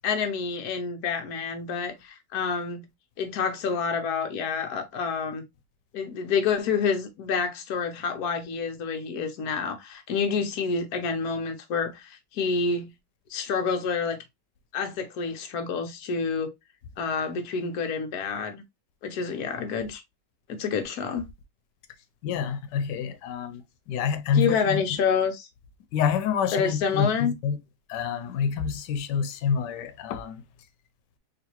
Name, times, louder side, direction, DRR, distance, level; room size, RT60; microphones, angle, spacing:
voice 1, 0.0-2.9 3.2-5.5 5.9-12.9 13.3-14.2 14.7-16.5 17.0-18.6 19.0-20.0 20.5-21.3 24.4-25.5 26.5-27.3, left 5 dB, 70° left, 1.2 m, -28 dB
voice 2, 22.2-24.8 25.9-27.6 27.9-30.4, left 7 dB, 90° left, 1.2 m, -27 dB
3.9 x 2.6 x 2.8 m
omnidirectional pair, 1.8 m